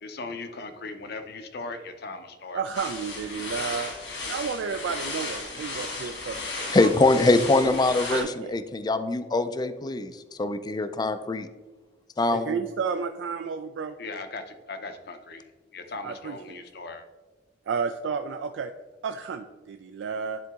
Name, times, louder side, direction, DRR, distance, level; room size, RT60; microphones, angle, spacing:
voice 1, 0.0-2.6 14.0-15.4 15.7-17.1, left 3 dB, 60° left, 8 dB, 0.7 m, -38 dB
voice 2, 2.5-3.9 4.3-6.9 7.6-8.5 12.3-13.9 16.0-16.6 17.7-18.7 19.0-20.4, right 6 dB, 80° right, 7 dB, 0.3 m, -32 dB
sound 1, 2.7-8.2, left 3 dB, 80° left, 2.2 m, -35 dB
voice 3, 6.7-10.1 10.4-11.5 12.2-12.6, left 2 dB, 20° left, 11 dB, 0.3 m, -23 dB
10.5 x 3.8 x 3.6 m, 1.2 s
head